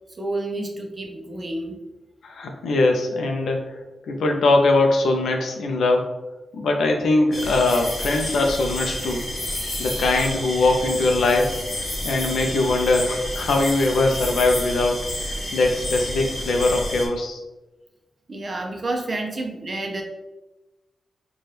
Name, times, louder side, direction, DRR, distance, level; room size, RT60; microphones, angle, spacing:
voice 1, 0.2-1.8 18.3-20.0, right 2 dB, 25° right, 2 dB, 0.5 m, -29 dB
voice 2, 2.2-3.6 4.1-6.1 6.5-9.2 9.8-11.6 12.0-15.0 15.3-17.4, left 2 dB, 80° left, 3 dB, 0.4 m, -21 dB
sound 1, 7.3-17.1, left 1 dB, 40° left, 0.7 m, -30 dB
4.2 x 2.2 x 3.2 m, 1.1 s
wide cardioid pair, 180°, 0 cm